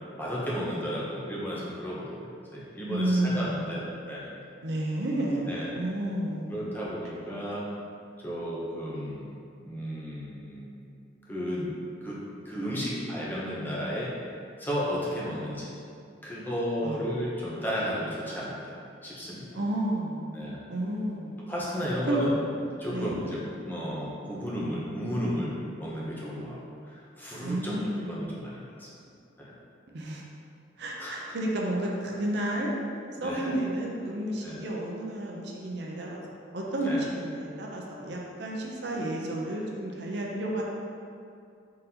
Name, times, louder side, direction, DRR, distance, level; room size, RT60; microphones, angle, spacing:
voice 1, 0.2-4.3 5.5-5.8 6.5-7.7 8.2-9.3 9.6-10.7 11.3-11.7 12.0-14.1 14.6-15.7 16.2-19.5 20.3-20.6 21.5-22.3 22.8-26.6 26.8-28.9 29.4-29.5 31.0-31.1 33.2-33.5 34.4-34.6 36.8-37.0, equal, 10° left, -7 dB, 0.6 m, -33 dB
voice 2, 2.9-4.0 4.6-6.7 16.8-17.0 19.5-21.3 22.1-22.3 22.9-23.2 26.4-26.7 27.4-28.2 29.9-30.2 30.8-32.7 33.2-36.2 36.5-40.6, right 1 dB, 60° right, -2 dB, 0.6 m, -31 dB
3.9 x 3.9 x 2.8 m, 2.5 s
head